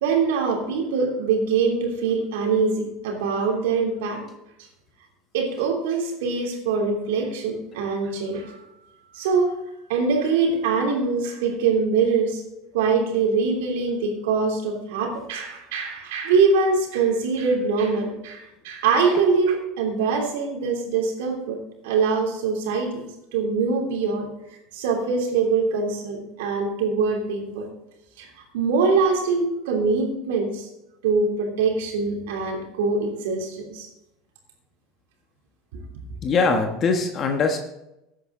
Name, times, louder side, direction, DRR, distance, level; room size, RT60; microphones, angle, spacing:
voice 1, 0.0-4.2 5.3-8.7 9.1-9.5 9.9-12.4 12.7-21.6 21.8-23.0 23.3-24.3 24.7-27.7 28.2-30.7 31.0-33.9, right 4 dB, 80° right, 1 dB, 3.1 m, -23 dB
voice 2, 36.2-37.6, left 4 dB, 40° left, 5 dB, 1.3 m, -22 dB
13.5 x 9.1 x 3.9 m, 0.90 s
supercardioid pair, 105°, 0 cm